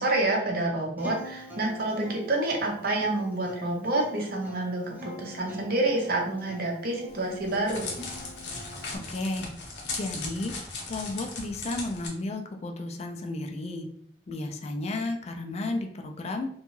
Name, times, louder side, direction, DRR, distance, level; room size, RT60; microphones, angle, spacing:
voice 1, 0.0-7.9, right 2 dB, 60° right, 1 dB, 0.6 m, -28 dB
Acoustic guitar, 1.0-9.0, left 1 dB, 10° right, 0.6 m, -45 dB
Crackle, 7.1-12.1, left 3 dB, 70° left, 0.7 m, -37 dB
voice 2, 9.1-9.5 9.9-10.5 10.9-13.9 14.3-16.5, left 2 dB, 40° left, 3 dB, 0.3 m, -33 dB
2.6 x 2.2 x 3.0 m, 0.64 s
head